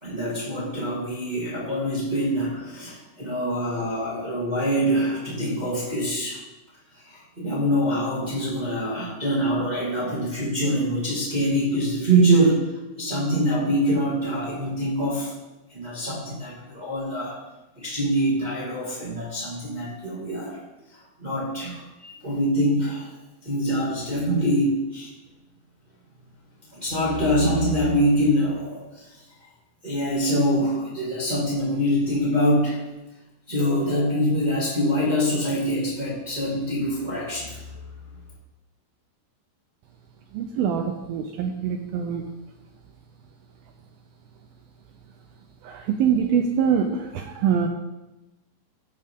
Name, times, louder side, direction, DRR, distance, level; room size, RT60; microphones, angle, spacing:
voice 1, 0.0-6.4 6.9-12.7 13.0-15.3 15.7-17.4 17.8-20.6 21.2-23.1 23.4-25.1 26.7-29.2 29.8-32.8 33.5-37.6, equal, 30° right, -6 dB, 0.8 m, -24 dB
voice 2, 40.3-42.2 45.6-47.7, right 7 dB, 85° right, 4 dB, 2.1 m, -24 dB
15.5 x 7.8 x 3.6 m, 1.0 s
omnidirectional pair, 5.0 m